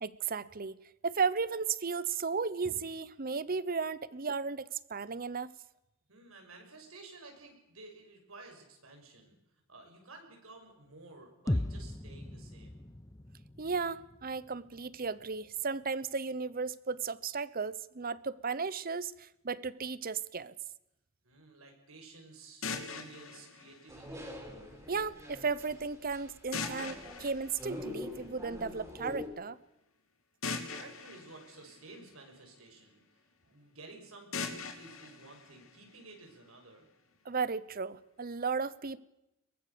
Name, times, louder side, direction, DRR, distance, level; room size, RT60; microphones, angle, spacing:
voice 1, 0.0-5.5 13.6-20.5 24.9-29.6 37.2-39.0, right 5 dB, 45° right, 0.9 m, -35 dB
voice 2, 6.1-9.4 9.7-12.8 21.2-24.4 30.5-36.9, right 3 dB, 85° right, 6.2 m, -53 dB
sound 1, 11.5-15.4, left 1 dB, 15° left, 0.8 m, -38 dB
sound 2, 22.6-24.6 26.5-28.5 30.4-32.6 34.3-36.4, left 4 dB, 80° left, 2.8 m, -42 dB
sound 3, 23.9-29.3, left 1 dB, 15° right, 5.1 m, -45 dB
23.0 x 19.5 x 7.0 m
head